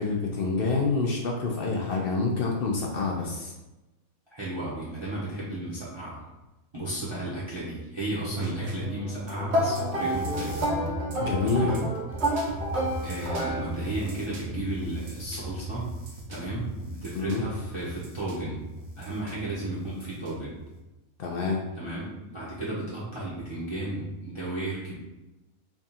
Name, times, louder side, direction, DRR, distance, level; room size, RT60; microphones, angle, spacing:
voice 1, 0.0-3.5 11.2-11.7 17.1-17.4 21.2-21.6, left 4 dB, 70° left, 0 dB, 0.5 m, -27 dB
voice 2, 4.3-6.2 6.7-10.7 11.4-11.9 13.0-15.9 16.3-18.6 19.0-20.5 21.8-24.9, right 2 dB, 25° right, -8 dB, 0.7 m, -34 dB
sound 1, 8.3-20.8, equal, 75° right, 1.3 m, -37 dB
sound 2, 9.5-14.1, equal, 55° right, 0.9 m, -29 dB
3.5 x 2.4 x 4.1 m, 1.0 s
omnidirectional pair, 1.5 m